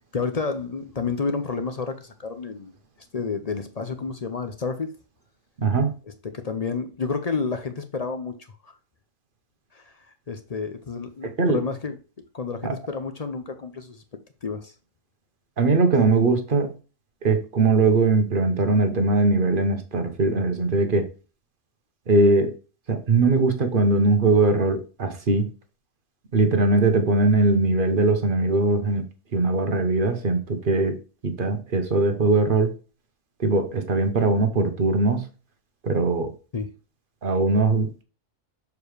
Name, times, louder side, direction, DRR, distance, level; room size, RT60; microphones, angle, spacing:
voice 1, 0.1-2.7 3.1-5.0 6.2-8.7 9.7-9.8 10.3-12.0 12.3-14.0 14.4-14.7 36.5-36.7, left 4 dB, 40° left, 0.6 m, -30 dB
voice 2, 5.6-5.9 11.4-11.6 12.6-12.7 15.6-16.7 17.2-21.0 22.1-22.5 22.9-25.5 26.3-29.0 29.3-30.9 31.2-32.7 33.4-35.2 35.8-36.3 37.2-38.0, right 3 dB, 45° right, 1.1 m, -21 dB
6.8 x 4.7 x 3.2 m
omnidirectional pair, 1.3 m